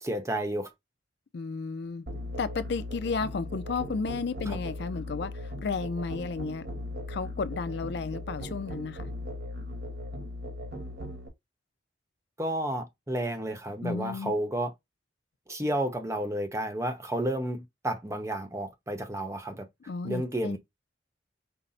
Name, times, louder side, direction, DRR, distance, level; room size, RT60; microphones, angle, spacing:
voice 1, 0.0-0.7 4.5-4.6 12.4-14.7 15.5-19.7 20.0-20.6, right 1 dB, 15° right, 0.8 m, -31 dB
voice 2, 1.3-2.1 2.4-6.7 7.1-9.1 13.8-14.3 19.9-20.6, left 4 dB, 65° left, 0.4 m, -33 dB
Musical instrument, 2.1-11.3, left 1 dB, 65° right, 1.2 m, -38 dB
5.6 x 2.0 x 3.8 m
head